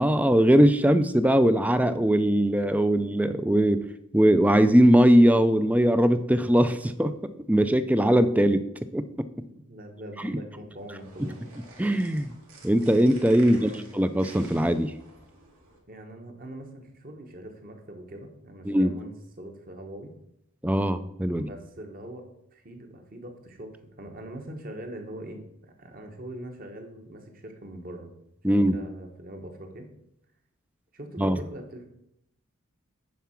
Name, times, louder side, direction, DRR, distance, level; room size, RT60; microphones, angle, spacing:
voice 1, 0.0-3.8 4.1-7.2 7.5-8.7 8.9-9.3 10.2-10.4 11.2-11.3 11.8-12.3 12.6-14.9 18.7-18.9 20.6-21.5 28.4-28.8 31.2-31.4, equal, 5° right, 12 dB, 0.4 m, -21 dB
voice 2, 9.4-11.4 13.4-13.8 15.9-20.1 21.3-22.2 22.5-23.7 24.0-28.1 28.7-29.9 30.9-31.9, right 1 dB, 40° right, 4 dB, 1.3 m, -42 dB
sound 1, 10.8-15.8, right 3 dB, 85° right, 2.4 m, -51 dB
9.4 x 4.7 x 5.8 m, 0.77 s
head